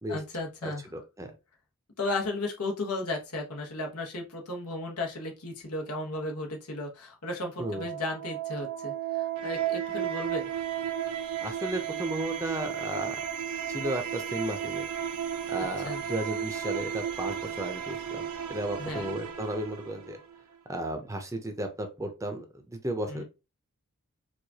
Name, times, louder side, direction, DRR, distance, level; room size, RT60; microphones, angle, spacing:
voice 1, 0.1-0.8 2.0-10.5 15.8-16.0 18.8-19.1 23.1-23.2, left 2 dB, 85° left, 1 dB, 1.1 m, -34 dB
voice 2, 0.6-1.3 7.6-7.9 11.4-13.2 13.7-14.8 15.5-18.2 18.5-20.2 20.7-23.2, right 1 dB, 15° right, 5 dB, 0.6 m, -34 dB
sound 1, 7.4-20.4, right 9 dB, 70° right, 0.5 m, -34 dB
sound 2, 9.4-18.7 18.9-19.1, right 9 dB, 85° right, 1.4 m, -43 dB
4.7 x 2.4 x 2.8 m, 0.28 s
head